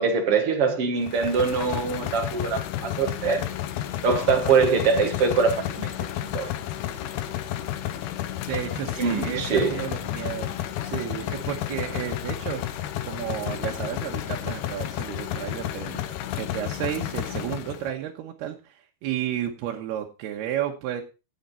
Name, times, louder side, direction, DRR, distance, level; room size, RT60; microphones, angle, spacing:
voice 1, 0.0-3.4 4.0-5.9 6.3-6.5 9.0-9.8, right 5 dB, 50° right, 1.9 m, -23 dB
sound 1, 1.0-17.9, left 12 dB, 85° left, 2.9 m, -32 dB
voice 2, 8.4-10.5 10.8-21.0, right 11 dB, 85° right, 3.1 m, -32 dB
17.5 x 6.5 x 4.2 m
omnidirectional pair, 4.5 m